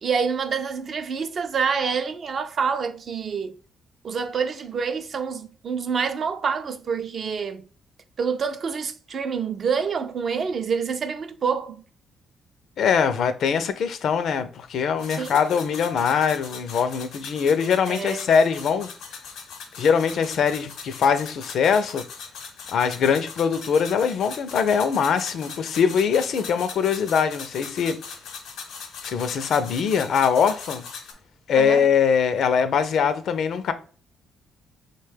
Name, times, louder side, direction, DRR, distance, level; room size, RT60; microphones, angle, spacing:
voice 1, 0.0-3.5 4.0-7.6 8.2-11.8 15.1-15.4 17.9-18.2 31.5-31.8, right 6 dB, 50° right, 0.4 m, -27 dB
voice 2, 12.8-18.9 19.8-22.0 22.7-28.0 29.0-30.8 31.5-33.7, left 6 dB, 65° left, 0.4 m, -22 dB
sound 1, 15.0-31.1, left 5 dB, 85° left, 0.8 m, -40 dB
5.3 x 2.2 x 3.3 m
cardioid pair, 90°, 0 cm